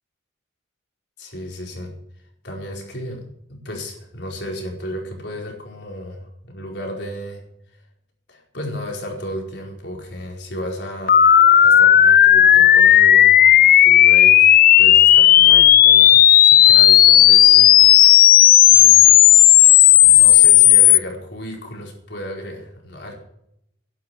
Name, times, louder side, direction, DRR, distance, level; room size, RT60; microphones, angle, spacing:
voice 1, 1.2-1.9 2.4-7.4 8.3-11.3 11.6-17.7 18.1-18.2 18.7-19.2 20.0-23.1, equal, 65° left, 0 dB, 4.7 m, -33 dB
sound 1, 11.1-21.0, left 12 dB, 50° left, 0.5 m, -11 dB
12.5 x 11.5 x 6.2 m, 0.76 s
head